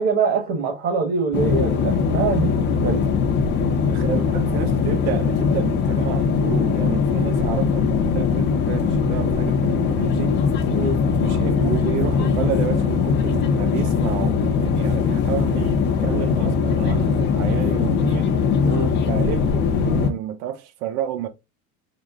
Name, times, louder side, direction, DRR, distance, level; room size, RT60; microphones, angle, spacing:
voice 1, 0.0-3.0 10.7-11.0 18.6-18.9, right 4 dB, 35° right, 1.3 m, -23 dB
sound 1, 1.3-20.1, left 5 dB, 25° left, 0.6 m, -21 dB
voice 2, 3.9-10.3 11.2-18.3 19.1-21.3, right 11 dB, 85° right, 0.9 m, -30 dB
5.1 x 2.1 x 3.6 m
cardioid pair, 155°, 42 cm